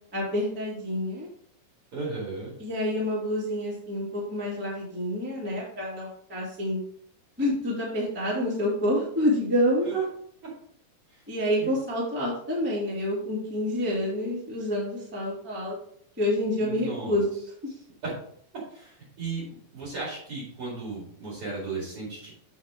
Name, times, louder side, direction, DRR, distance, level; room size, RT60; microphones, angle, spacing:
voice 1, 0.1-1.3 2.6-6.8 7.4-9.9 11.3-15.7 16.2-17.3, left 1 dB, 5° right, -6 dB, 1.7 m, -28 dB
voice 2, 1.9-2.5 9.8-10.0 11.6-11.7 16.6-17.1 18.0-18.1 18.7-22.3, right 4 dB, 40° right, -5 dB, 2.7 m, -35 dB
7.8 x 5.8 x 3.7 m, 0.64 s
omnidirectional pair, 4.5 m